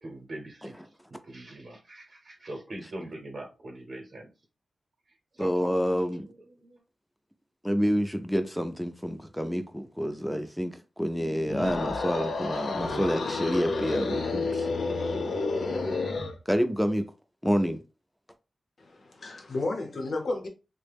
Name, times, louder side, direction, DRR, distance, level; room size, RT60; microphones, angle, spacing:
voice 1, 0.0-0.7 1.2-4.3 5.3-5.5 6.1-6.8, right 1 dB, 55° right, 0.8 m, -42 dB
voice 2, 5.4-6.3 7.6-14.7 16.5-17.1 17.4-17.8, equal, ahead, 0.4 m, -28 dB
sound 1, 11.4-16.4, left 3 dB, 90° left, 0.5 m, -30 dB
voice 3, 18.8-20.5, left 2 dB, 55° left, 0.8 m, -32 dB
3.3 x 2.1 x 3.3 m
wide cardioid pair, 125°, 0 cm